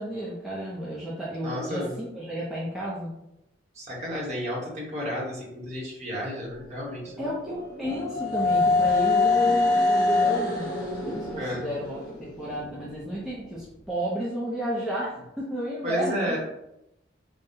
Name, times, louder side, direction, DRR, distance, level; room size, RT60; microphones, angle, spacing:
voice 1, 0.0-3.1 7.2-10.7 11.1-16.4, equal, ahead, -8 dB, 0.6 m, -32 dB
voice 2, 1.4-1.9 3.7-7.3 11.4-11.7 15.8-16.4, equal, 35° right, -3 dB, 1.1 m, -32 dB
sound 1, 7.0-12.9, left 3 dB, 50° left, 1.1 m, -25 dB
5.3 x 2.2 x 2.7 m, 0.84 s
head